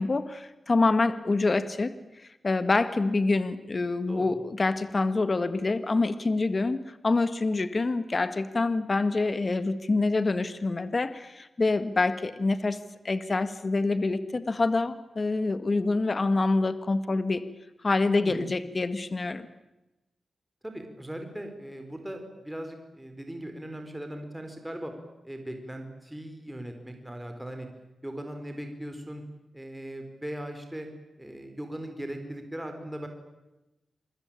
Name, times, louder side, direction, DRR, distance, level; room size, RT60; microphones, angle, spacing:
voice 1, 0.0-1.9 2.2-12.8 13.0-17.4 17.8-19.4, left 3 dB, 40° left, 12 dB, 1.7 m, -26 dB
voice 2, 4.1-4.4 18.2-18.5 20.6-24.9 25.2-27.7 28.0-29.2 29.5-30.9 31.2-33.1, right 1 dB, 10° right, 5 dB, 4.5 m, -39 dB
28.5 x 22.5 x 9.0 m, 1.0 s
cardioid pair, 75°, 0 cm